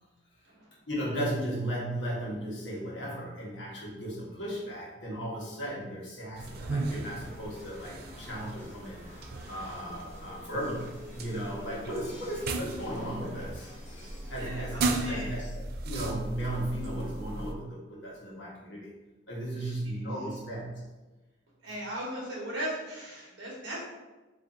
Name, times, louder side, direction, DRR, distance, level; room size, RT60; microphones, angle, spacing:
voice 1, 0.9-9.1 9.5-13.7 14.3-18.9 19.3-20.9 21.6-21.9, right 1 dB, 65° left, -6 dB, 1.3 m, -36 dB
sound 1, 6.4-14.5, equal, 35° left, 1.2 m, -48 dB
sound 2, 6.4-17.5, right 2 dB, 55° right, 0.3 m, -37 dB
voice 2, 14.4-15.3 19.6-19.7 21.6-23.8, right 1 dB, 75° right, -5 dB, 1.0 m, -37 dB
3.3 x 2.5 x 4.0 m, 1.2 s
head